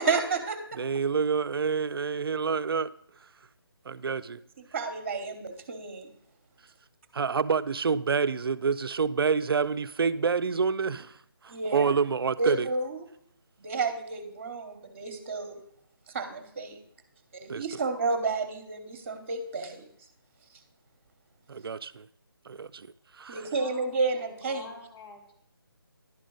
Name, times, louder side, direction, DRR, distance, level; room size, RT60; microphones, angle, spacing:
voice 1, 0.0-0.8 4.6-6.1 11.5-11.9 12.4-13.0 13.6-15.6 16.1-16.8 17.3-19.9 23.3-24.7, right 4 dB, 35° right, 1.0 m, -31 dB
voice 2, 0.8-2.9 3.9-4.4 7.1-11.2 11.4-12.7 17.5-17.6 21.5-22.1 22.5-22.9 23.1-23.4, right 5 dB, 70° right, 0.4 m, -27 dB
voice 3, 23.4-23.9 24.2-25.4, left 4 dB, 85° left, 2.5 m, -47 dB
10.5 x 5.0 x 3.9 m
figure-of-eight pair, 160°, 13 cm